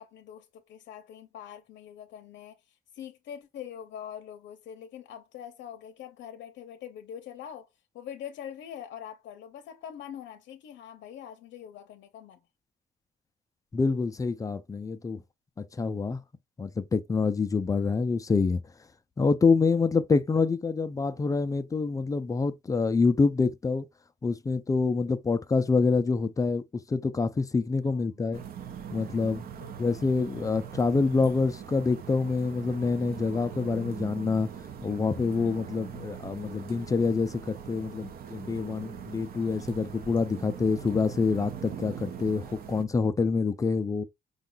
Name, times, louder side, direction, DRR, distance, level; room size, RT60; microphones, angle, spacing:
voice 1, 0.0-12.4 27.9-28.3 29.5-30.0, left 9 dB, 85° left, 0.6 m, -44 dB
voice 2, 13.7-15.2 15.6-16.2 16.6-18.6 19.2-23.9 24.2-28.4 28.9-29.4 29.8-34.5 34.8-44.0, left 4 dB, 20° left, 0.3 m, -26 dB
sound 1, 28.3-42.9, right 8 dB, 55° right, 0.6 m, -41 dB
5.4 x 2.3 x 3.8 m
cardioid pair, 165°, 19 cm